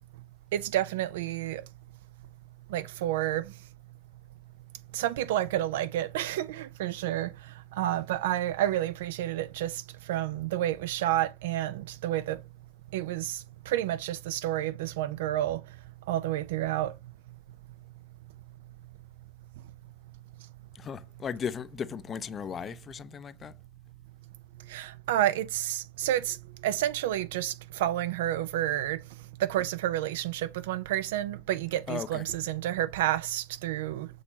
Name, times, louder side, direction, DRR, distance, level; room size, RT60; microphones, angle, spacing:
voice 1, 0.5-1.6 2.7-3.5 4.9-7.3 7.7-9.8 10.1-12.4 12.9-15.6 16.1-16.9 24.7-26.4 26.6-29.0 29.4-34.1, right 13 dB, 80° right, 0.4 m, -30 dB
voice 2, 20.7-23.5 31.9-32.2, left 7 dB, 35° left, 0.5 m, -36 dB
6.3 x 3.0 x 2.7 m
hypercardioid pair, 90°, 0 cm